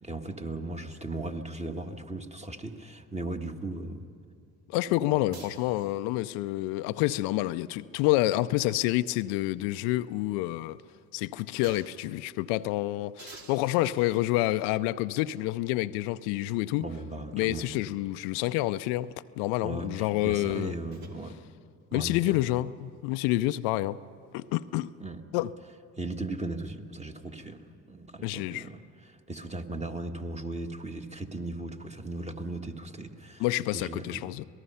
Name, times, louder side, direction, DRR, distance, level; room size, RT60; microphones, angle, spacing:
voice 1, 0.0-4.1 5.3-5.5 16.8-17.7 19.6-21.4 21.9-22.5 25.0-25.2 26.0-33.4 33.7-34.4, right 2 dB, 15° right, 1.6 m, -37 dB
voice 2, 4.7-10.8 11.1-16.9 17.3-20.7 21.9-24.0 24.3-24.9 25.3-25.5 28.2-28.6 33.4-34.4, left 16 dB, 80° left, 0.6 m, -28 dB
sound 1, 5.3-6.3 8.0-9.6 10.0-10.1 11.6-12.1 13.2-14.7 15.6-15.7 20.3-21.2, right 4 dB, 65° right, 2.8 m, -52 dB
26.0 x 18.5 x 5.6 m
supercardioid pair, 65°, 39 cm